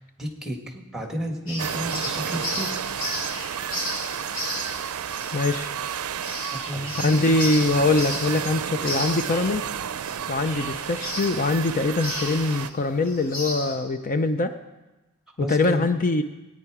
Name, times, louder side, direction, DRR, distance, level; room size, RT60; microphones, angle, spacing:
voice 1, 0.0-2.9 6.4-7.2 15.4-15.8, equal, ahead, 2 dB, 1.9 m, -32 dB
sound 1, 1.5-13.7, left 1 dB, 80° left, 4.7 m, -35 dB
sound 2, 1.6-12.7, right 8 dB, 80° right, 0.5 m, -31 dB
voice 2, 5.3-5.7 7.0-9.6 10.3-14.6 15.4-16.2, left 2 dB, 40° left, 9 dB, 0.6 m, -23 dB
18.0 x 9.6 x 4.9 m, 1.1 s
head